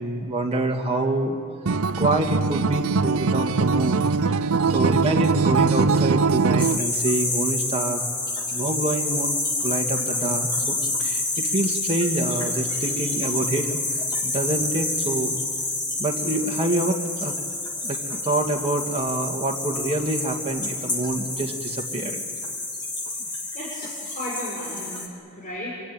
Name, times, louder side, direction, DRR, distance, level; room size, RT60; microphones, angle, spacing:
voice 1, 0.0-1.4 2.0-4.4 4.7-8.0 8.5-15.4 16.0-17.3 17.8-18.0 18.2-22.2, right 2 dB, 25° right, 1 dB, 2.0 m, -26 dB
Acoustic guitar, 1.7-6.8, right 4 dB, 85° right, 0.7 m, -21 dB
sound 1, 6.6-25.1, left 2 dB, 20° left, 2.5 m, -28 dB
voice 2, 12.7-13.1 17.7-17.9 23.5-25.0 25.3-25.8, left 1 dB, 35° left, -6 dB, 6.0 m, -35 dB
26.0 x 23.5 x 9.1 m, 2.2 s
head